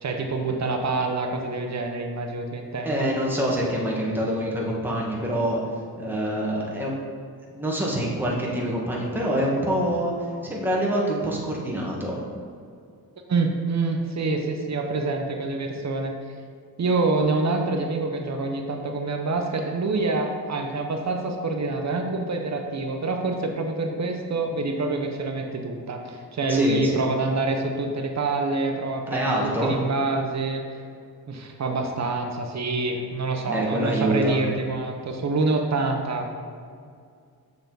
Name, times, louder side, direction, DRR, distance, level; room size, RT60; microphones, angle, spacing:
voice 1, 0.0-3.1 13.3-16.2 16.8-30.6 31.3-36.4, right 3 dB, 45° right, 3 dB, 0.9 m, -26 dB
voice 2, 2.8-5.6 6.0-6.9 7.5-10.1 10.4-12.2 26.5-27.0 29.1-29.7 33.4-34.4, right 1 dB, 5° right, -4 dB, 1.5 m, -25 dB
7.0 x 6.7 x 4.0 m, 2.3 s
cardioid pair, 110°, 38 cm